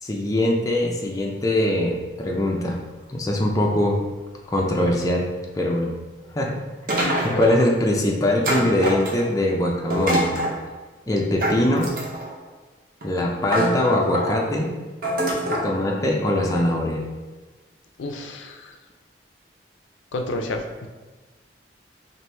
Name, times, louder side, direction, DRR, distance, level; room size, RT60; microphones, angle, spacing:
voice 1, 0.0-2.8 3.1-4.0 4.5-5.3 5.5-5.9 6.3-6.6 6.9-10.3 11.1-11.9 13.0-14.7 15.6-17.0, left 1 dB, 20° left, -1 dB, 0.5 m, -22 dB
sound 1, 6.9-7.7 8.4-9.4 9.9-10.6 11.4-12.3 13.0-13.1 13.5-14.4 15.0-15.7, right 1 dB, 50° right, 0.8 m, -24 dB
voice 2, 7.1-7.4 18.0-18.8 20.1-20.9, left 2 dB, 85° left, 4 dB, 0.4 m, -30 dB
4.4 x 2.6 x 3.3 m, 1.2 s
head